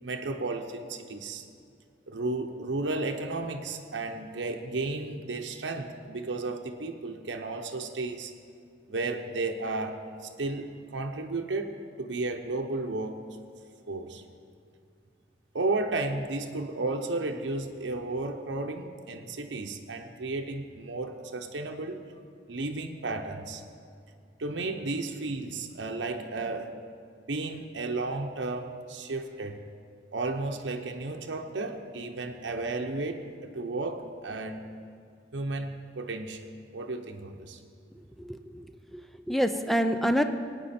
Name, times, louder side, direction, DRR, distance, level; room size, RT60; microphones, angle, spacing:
voice 1, 0.0-1.4 2.1-8.3 8.9-13.2 13.9-14.2 15.5-22.0 22.5-23.6 24.4-26.7 27.2-29.6 30.1-34.7 35.3-37.6, right 2 dB, 90° right, 4 dB, 0.8 m, -33 dB
voice 2, 38.2-38.6 38.9-39.0 39.3-40.2, equal, ahead, 7 dB, 0.5 m, -26 dB
18.0 x 9.0 x 4.3 m, 2.4 s
head